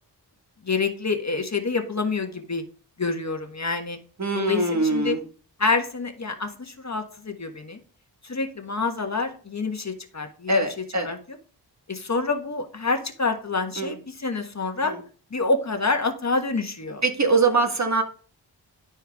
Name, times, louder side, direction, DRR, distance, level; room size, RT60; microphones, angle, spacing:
voice 1, 0.6-2.6 3.0-4.0 4.3-5.2 5.6-7.8 8.2-10.6 11.0-11.2 11.9-14.9 15.3-17.0, left 3 dB, 40° left, 5 dB, 1.4 m, -27 dB
voice 2, 4.2-5.2 10.5-11.1 13.8-14.0 14.8-15.0 17.0-18.0, right 3 dB, 40° right, 4 dB, 1.7 m, -23 dB
11.0 x 4.5 x 3.5 m, 0.40 s
cardioid pair, 50°, 43 cm